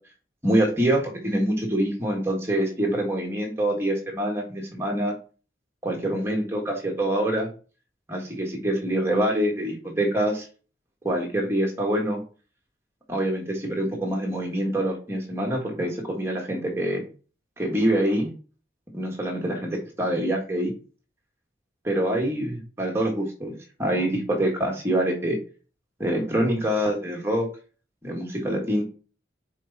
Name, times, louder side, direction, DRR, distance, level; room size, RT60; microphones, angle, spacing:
voice 1, 0.4-5.2 5.8-7.5 8.1-10.4 11.0-12.2 13.1-17.0 17.6-18.3 18.9-20.7 21.8-23.5 23.8-25.4 26.0-27.5 28.0-28.8, right 1 dB, 15° right, 0 dB, 1.6 m, -25 dB
6.5 x 4.5 x 4.1 m, 0.37 s
head